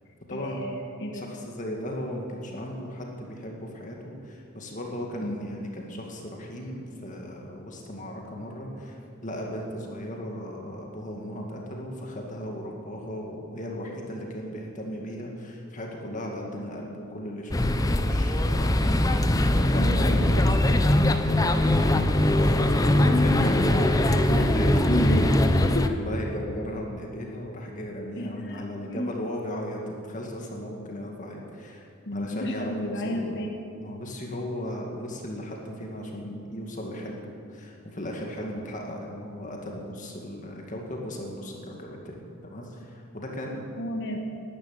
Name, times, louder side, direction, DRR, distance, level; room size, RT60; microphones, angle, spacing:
voice 1, 0.3-1.2 5.2-5.4 19.8-20.5 22.9-23.7 24.3-24.5 24.9-25.3 25.7-25.9 28.2-29.1 32.1-33.5 43.8-44.2, left 1 dB, 50° left, 2 dB, 1.5 m, -31 dB
voice 2, 1.1-20.3 20.9-25.3 25.8-31.8 32.1-33.3 33.8-43.6, equal, 35° left, 0 dB, 2.2 m, -36 dB
sound 1, 17.5-25.9, left 1 dB, 15° left, 0.6 m, -21 dB
12.5 x 11.5 x 8.9 m, 2.5 s
head